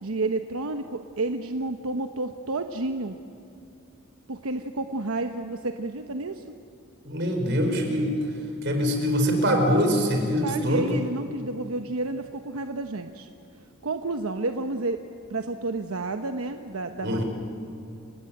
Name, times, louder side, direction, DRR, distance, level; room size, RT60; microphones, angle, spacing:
voice 1, 0.0-3.2 4.3-6.4 10.4-13.3 13.8-15.0 15.3-17.2, right 2 dB, 85° right, 7 dB, 1.0 m, -30 dB
voice 2, 7.1-8.2 8.6-10.9 17.0-17.2, equal, 55° right, 4 dB, 4.6 m, -23 dB
30.0 x 19.0 x 8.7 m, 2.5 s
head